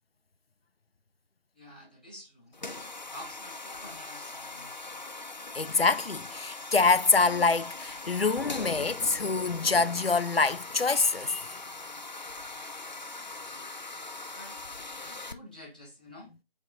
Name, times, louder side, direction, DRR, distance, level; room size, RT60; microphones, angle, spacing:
voice 1, 1.5-2.6 3.1-4.9 14.3-14.6 15.0-16.4, left 1 dB, 10° left, 0.9 m, -49 dB
sound 1, 2.5-15.3, left 3 dB, 50° left, 0.8 m, -41 dB
voice 2, 5.5-11.5, left 4 dB, 90° left, 0.7 m, -25 dB
8.4 x 3.6 x 3.7 m
figure-of-eight pair, 165°, 29 cm